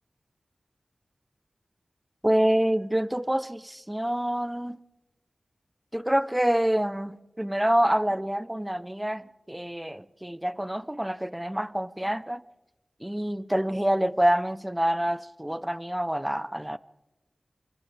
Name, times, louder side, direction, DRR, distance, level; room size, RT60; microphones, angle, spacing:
voice 1, 2.2-4.8 5.9-12.4 13.0-16.8, right 1 dB, 10° right, 0.6 m, -27 dB
28.5 x 26.5 x 3.5 m
wide cardioid pair, 95°, 0 cm